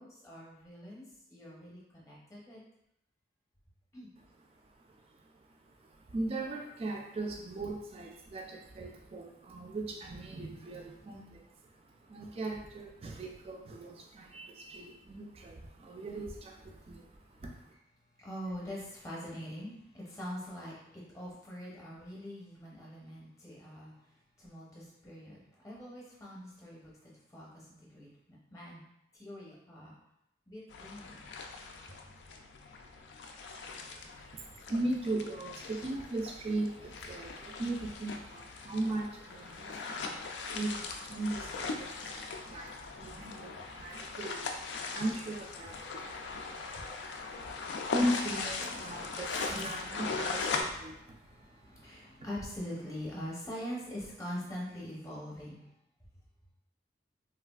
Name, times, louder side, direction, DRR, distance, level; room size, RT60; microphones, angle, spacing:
voice 1, 0.0-2.6 3.9-4.1 18.2-23.9 24.4-26.9 27.3-28.9 29.1-29.9 30.5-31.3 46.5-46.6 49.5-49.7 50.9-55.6, equal, 20° left, -5 dB, 0.7 m, -44 dB
voice 2, 4.6-17.7 33.7-52.3, right 1 dB, 35° right, 2 dB, 0.3 m, -39 dB
sound 1, 30.7-50.6, left 4 dB, 75° left, 0.3 m, -40 dB
3.2 x 2.4 x 2.3 m, 0.82 s
head